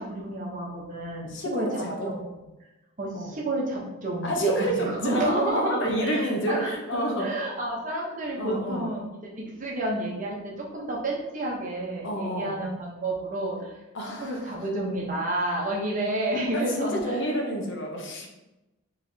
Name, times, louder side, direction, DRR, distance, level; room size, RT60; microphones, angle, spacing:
voice 1, 0.0-2.2 3.0-9.1 9.4-13.8 14.1-17.2, right 1 dB, 35° right, -3 dB, 0.9 m, -30 dB
voice 2, 1.3-2.1 3.1-3.3 4.2-7.3 8.4-8.9 12.0-12.6 13.9-14.5 16.5-18.3, equal, 55° left, 1 dB, 0.7 m, -29 dB
4.7 x 3.2 x 2.7 m, 1.0 s
head